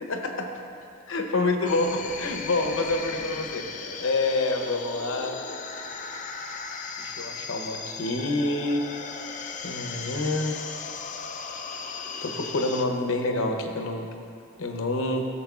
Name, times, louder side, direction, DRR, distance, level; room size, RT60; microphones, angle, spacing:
voice 1, 0.0-0.5 1.1-3.6 4.0-5.4 7.0-8.8 9.6-10.6 12.2-14.1 14.6-15.3, left 2 dB, 65° left, 4 dB, 0.8 m, -27 dB
sound 1, 1.7-12.9, left 5 dB, 35° left, 0.4 m, -37 dB
14.0 x 7.3 x 2.4 m, 2.4 s
head